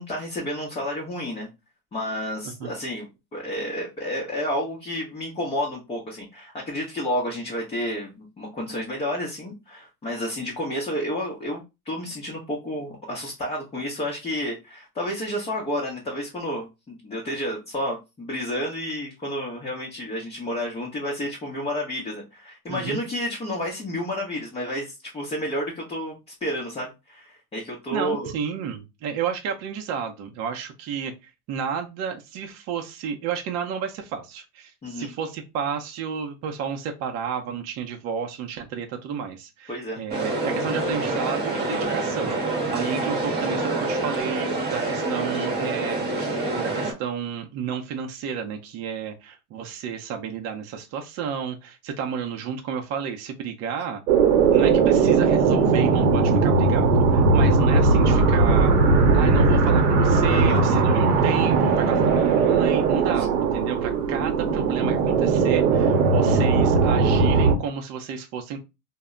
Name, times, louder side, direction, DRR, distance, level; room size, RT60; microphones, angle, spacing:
voice 1, 0.0-1.5 1.9-3.1 3.3-28.3 34.8-35.1 39.7-40.0 60.3-60.6 63.2-63.3, equal, 15° left, -3 dB, 0.6 m, -30 dB
voice 2, 22.7-23.0 27.9-54.0 54.5-58.8 59.1-68.6, right 7 dB, 35° right, 3 dB, 0.5 m, -31 dB
sound 1, 40.1-46.9, right 2 dB, 20° right, 0.9 m, -26 dB
sound 2, 54.1-67.6, right 4 dB, 80° right, 0.8 m, -19 dB
2.1 x 2.0 x 3.6 m, 0.25 s
supercardioid pair, 120°, 45 cm